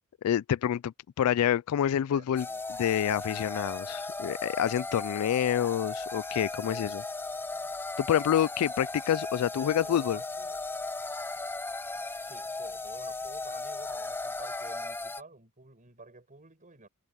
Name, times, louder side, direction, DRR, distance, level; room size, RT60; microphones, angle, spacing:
voice 1, 0.2-7.0 8.0-10.2, left 10 dB, 75° left, 0.3 m, -28 dB
voice 2, 1.9-2.6 6.6-7.1 9.5-10.6 12.2-16.9, right 3 dB, 35° right, 6.0 m, -52 dB
sound 1, 2.4-15.2, left 3 dB, 10° left, 0.5 m, -36 dB
head